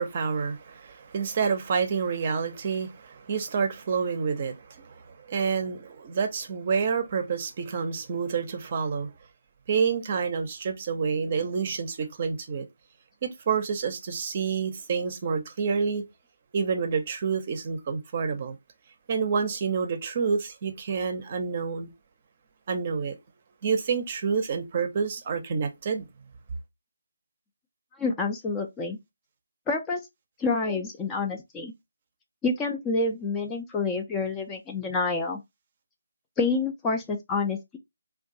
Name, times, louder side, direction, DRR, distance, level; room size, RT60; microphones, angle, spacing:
voice 1, 0.0-9.1 9.7-12.7 13.2-16.0 16.5-18.6 19.1-21.9 22.7-23.2 23.6-26.1, right 5 dB, 35° right, 0.6 m, -28 dB
voice 2, 28.0-29.0 29.7-30.0 30.4-31.7 32.4-35.4 36.4-37.8, left 3 dB, 10° left, 0.4 m, -28 dB
2.5 x 2.3 x 3.9 m
figure-of-eight pair, 155°, 0 cm